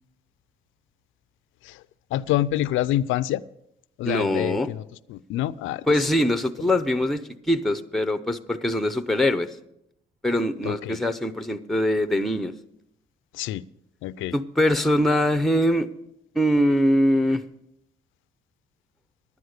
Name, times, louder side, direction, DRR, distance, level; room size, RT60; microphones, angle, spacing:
voice 1, 2.1-3.4 4.0-4.8 5.1-5.9 10.6-11.0 13.3-13.6 14.0-14.3, left 13 dB, 85° left, 18 dB, 0.4 m, -26 dB
voice 2, 4.0-4.7 5.9-9.5 10.2-12.5 14.3-15.9 16.3-17.4, left 1 dB, ahead, 12 dB, 0.6 m, -22 dB
11.0 x 9.4 x 6.5 m, 0.81 s
cardioid pair, 90°, 20 cm